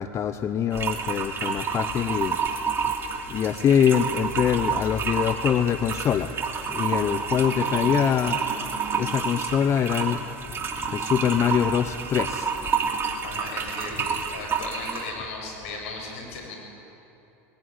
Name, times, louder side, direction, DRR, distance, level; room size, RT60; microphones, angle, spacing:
voice 1, 0.0-2.4 2.8-2.9 3.3-6.3 6.7-8.4 8.9-10.2 10.9-12.5, left 8 dB, 40° left, 10 dB, 0.8 m, -24 dB
sound 1, 0.7-15.1, right 6 dB, 30° right, 2.9 m, -29 dB
voice 2, 13.2-16.6, left 3 dB, 80° left, 1 dB, 7.0 m, -36 dB
21.0 x 17.0 x 9.6 m, 2.9 s
supercardioid pair, 100°, 8 cm